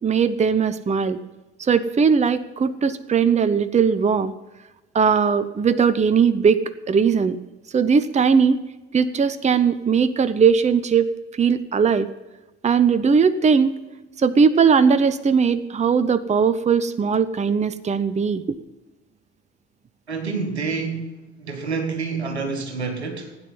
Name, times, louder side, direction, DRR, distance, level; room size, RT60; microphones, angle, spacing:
voice 1, 0.0-1.2 1.6-4.3 4.9-7.4 7.7-8.6 8.9-12.1 12.6-13.7 14.2-18.4, right 6 dB, 20° right, 0.8 m, -19 dB
voice 2, 20.1-23.4, right 4 dB, 85° right, 1.5 m, -28 dB
16.5 x 9.5 x 5.7 m
figure-of-eight pair, 55°, 32 cm